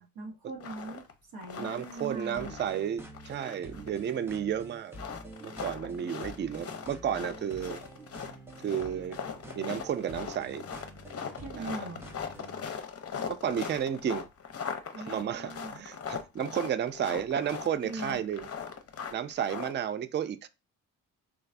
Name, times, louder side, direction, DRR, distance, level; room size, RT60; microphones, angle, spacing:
voice 1, 0.0-2.5 11.4-12.0 14.9-15.8 17.8-18.2, right 2 dB, 60° right, 1.1 m, -41 dB
sound 1, 0.6-1.1 1.4-2.9 3.1-4.3 4.9-19.7, left 6 dB, 35° left, 0.7 m, -40 dB
voice 2, 1.6-4.9 5.4-7.8 8.6-9.2 9.5-10.7 11.6-11.9 13.3-14.3 15.0-18.5 19.1-20.5, right 9 dB, 30° right, 0.4 m, -32 dB
sound 2, 2.3-12.7, right 1 dB, 5° right, 0.8 m, -48 dB
3.1 x 2.4 x 2.5 m
hypercardioid pair, 50°, 40 cm